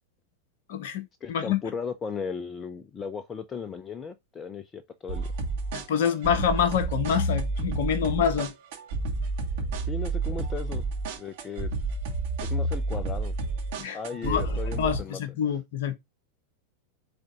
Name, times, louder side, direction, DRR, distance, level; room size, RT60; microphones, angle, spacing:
voice 1, 0.7-1.6 5.7-8.5 13.8-15.9, left 8 dB, 55° left, 1.2 m, -27 dB
voice 2, 1.2-5.3 9.9-10.9 11.2-11.7 12.4-13.3 13.9-15.2, left 5 dB, 20° left, 0.6 m, -36 dB
sound 1, 5.1-15.0, right 2 dB, 50° right, 2.4 m, -30 dB
6.8 x 3.9 x 3.8 m
figure-of-eight pair, 90°, 0 cm